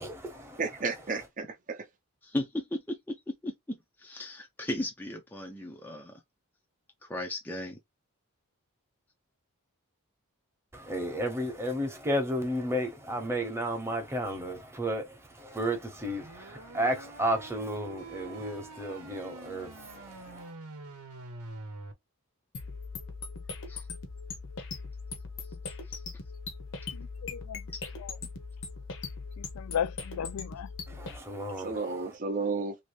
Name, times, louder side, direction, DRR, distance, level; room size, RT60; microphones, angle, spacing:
voice 1, 0.0-1.3 10.7-20.5 30.9-32.2, equal, 10° right, 1.0 m, -33 dB
voice 2, 0.6-1.8 31.6-32.8, right 4 dB, 35° right, 0.7 m, -32 dB
voice 3, 2.2-3.1 3.4-3.5 4.0-6.1 7.0-7.8 23.7-23.9 25.9-26.0 27.7-27.8, left 1 dB, 10° left, 0.5 m, -36 dB
sound 1, 16.0-21.9, right 3 dB, 85° right, 0.9 m, -46 dB
sound 2, 22.5-31.2, left 4 dB, 55° left, 0.8 m, -40 dB
voice 4, 26.9-27.6 29.4-30.7, left 8 dB, 70° left, 0.3 m, -35 dB
3.0 x 2.7 x 3.1 m
head